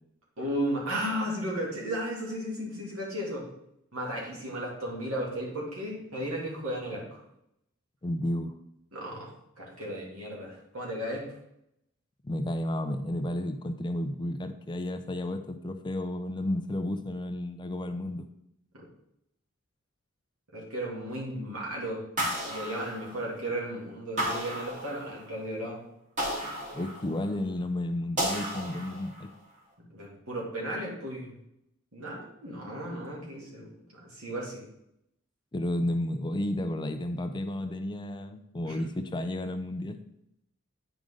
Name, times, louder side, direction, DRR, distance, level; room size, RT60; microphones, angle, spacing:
voice 1, 0.4-3.4 3.9-7.2 8.9-9.3 9.6-11.3 18.7-18.8 20.5-22.0 22.5-25.8 29.9-31.3 31.9-34.6 38.7-38.8, right 1 dB, 80° right, -3 dB, 2.5 m, -35 dB
voice 2, 8.0-8.5 12.2-18.3 26.7-29.3 35.5-40.0, left 1 dB, 20° left, 8 dB, 0.5 m, -32 dB
sound 1, 22.2-23.5 24.2-25.4 26.2-27.4 28.2-29.3, equal, 35° right, 2.3 m, -33 dB
9.0 x 5.1 x 3.8 m, 0.79 s
head